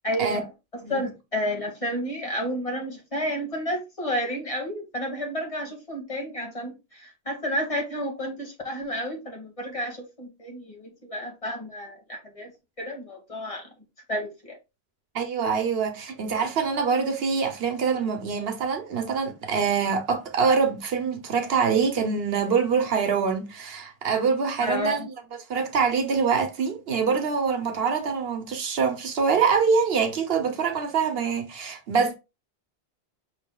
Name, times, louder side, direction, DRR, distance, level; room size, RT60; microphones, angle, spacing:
voice 1, 0.0-12.5 12.8-13.7 14.1-14.6 24.6-25.1, equal, 35° left, 1.5 m, -31 dB
voice 2, 15.1-25.1 25.5-32.1, right 5 dB, 70° right, 1.0 m, -25 dB
5.6 x 3.7 x 2.2 m
omnidirectional pair, 1.1 m